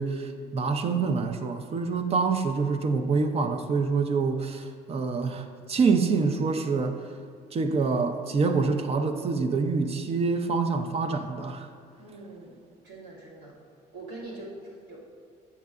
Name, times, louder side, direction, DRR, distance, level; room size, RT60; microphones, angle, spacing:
voice 1, 0.0-7.0 7.5-11.7, right 4 dB, 35° right, 7 dB, 0.5 m, -26 dB
voice 2, 12.0-12.6 12.8-13.6 13.9-15.0, right 2 dB, 90° right, -5 dB, 1.7 m, -43 dB
8.3 x 6.4 x 2.4 m, 2.2 s
cardioid pair, 110°, 17 cm